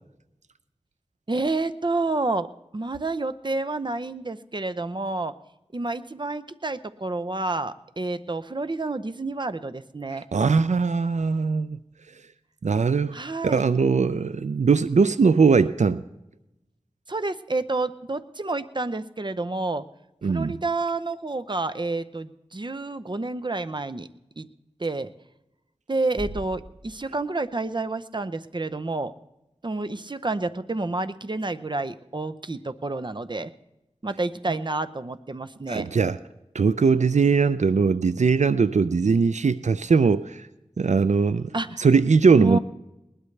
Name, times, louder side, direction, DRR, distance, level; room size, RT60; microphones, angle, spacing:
voice 1, 1.3-2.5 2.7-5.3 5.7-10.3 13.1-13.7 17.1-19.8 20.2-24.1 24.4-24.5 24.8-25.1 25.9-29.1 29.6-33.5 34.0-35.9 41.5-41.9 42.4-42.6, right 2 dB, 40° right, 12 dB, 0.7 m, -29 dB
voice 2, 10.1-11.8 12.6-13.2 13.4-16.0 20.2-20.6 35.7-36.2 36.5-40.5 40.8-41.5 41.8-42.6, right 5 dB, 85° right, 15 dB, 0.4 m, -20 dB
sound 1, 26.2-28.0, right 1 dB, 65° right, 6.9 m, -41 dB
20.5 x 19.5 x 3.3 m, 0.94 s
wide cardioid pair, 50°, 12 cm